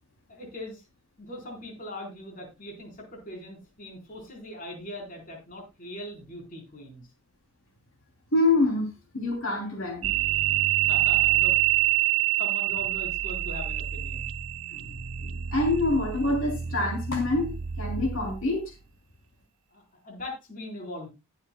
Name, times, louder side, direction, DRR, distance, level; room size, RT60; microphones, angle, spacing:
voice 1, 0.3-0.9 1.2-7.1 10.8-11.6 12.4-14.3 19.7-21.1, left 1 dB, 40° left, 0 dB, 4.2 m, -41 dB
voice 2, 8.3-10.1 14.7-14.8 15.2-17.5 17.8-18.6, left 2 dB, 60° left, 1 dB, 3.1 m, -26 dB
sound 1, 10.0-18.6, right 13 dB, 60° right, 0.6 m, -27 dB
20.0 x 7.3 x 2.3 m, 0.24 s
head